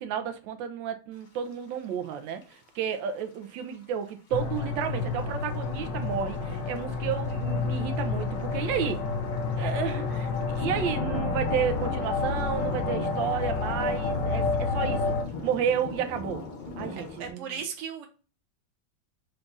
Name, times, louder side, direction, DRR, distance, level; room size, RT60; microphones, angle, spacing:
voice 1, 0.0-2.4 2.7-9.0 9.5-14.4 14.7-15.1 15.4-16.4 16.8-17.5, right 8 dB, 80° right, 1.3 m, -31 dB
sound 1, 2.1-2.2 2.4-2.5 3.2-3.7 4.5-4.6 4.8-4.9 5.2-6.3 6.8-17.3, left 2 dB, 55° left, 0.5 m, -39 dB
sound 2, 4.3-15.2, left 4 dB, 75° left, 1.5 m, -30 dB
voice 2, 17.0-18.1, right 7 dB, 50° right, 1.0 m, -36 dB
5.1 x 2.3 x 3.8 m
omnidirectional pair, 2.0 m